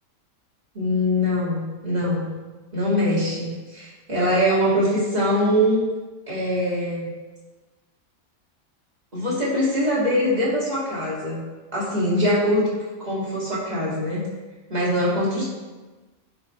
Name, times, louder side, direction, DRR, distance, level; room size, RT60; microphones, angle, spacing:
voice 1, 0.7-2.3 2.7-5.8 6.3-7.1 9.1-11.4 11.7-12.7 13.0-14.2 14.7-15.4, equal, 30° right, -7 dB, 2.4 m, -22 dB
9.3 x 5.5 x 3.2 m, 1.2 s
omnidirectional pair, 1.5 m